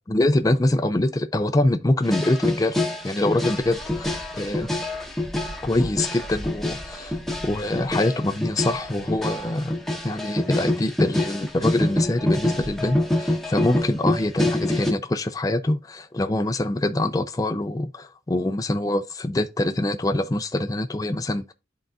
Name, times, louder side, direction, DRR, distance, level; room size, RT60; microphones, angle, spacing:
voice 1, 0.1-2.8 3.0-4.7 5.6-7.1 7.4-9.7 10.0-21.5, left 1 dB, 20° left, 0.4 m, -24 dB
sound 1, 2.0-14.9, left 1 dB, ahead, 0.9 m, -26 dB
11.5 x 3.8 x 2.3 m
head